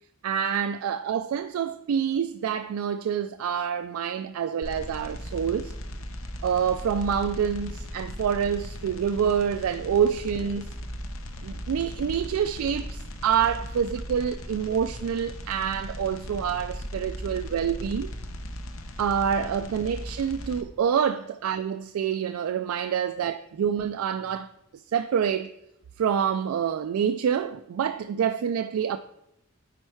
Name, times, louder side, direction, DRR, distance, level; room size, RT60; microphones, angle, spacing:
voice 1, 0.2-5.7 6.4-10.7 11.4-18.1 19.0-24.5 24.9-25.5 26.0-29.0, right 7 dB, 85° right, 0.3 m, -27 dB
sound 1, 4.6-20.6, equal, 75° left, 0.8 m, -38 dB
10.0 x 4.4 x 4.5 m
head